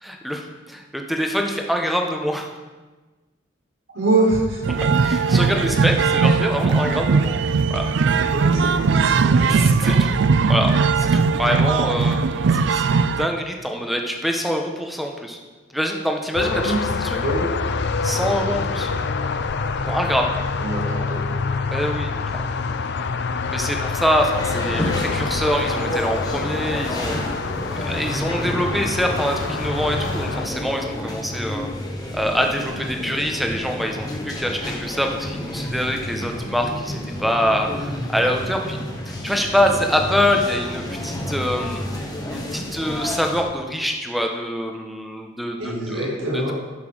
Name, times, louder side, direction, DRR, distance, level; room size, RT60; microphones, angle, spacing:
voice 1, 0.0-2.5 5.0-7.3 7.7-7.9 9.5-10.1 10.5-15.4 15.7-17.2 18.0-18.9 19.9-20.3 21.7-22.5 23.5-27.5 27.7-31.7 32.1-38.8 39.1-41.8 42.3-46.5, equal, ahead, 2 dB, 1.1 m, -25 dB
voice 2, 3.9-4.6 8.3-9.7 16.6-16.8 17.2-17.4 20.6-21.4 45.6-46.5, right 2 dB, 85° right, -6 dB, 4.0 m, -24 dB
sound 1, 4.6-13.3, right 4 dB, 65° right, 0.4 m, -19 dB
sound 2, 16.3-30.5, left 4 dB, 60° left, 0.6 m, -26 dB
sound 3, 24.4-43.4, left 1 dB, 20° left, 1.5 m, -30 dB
11.5 x 5.7 x 6.2 m, 1.2 s
head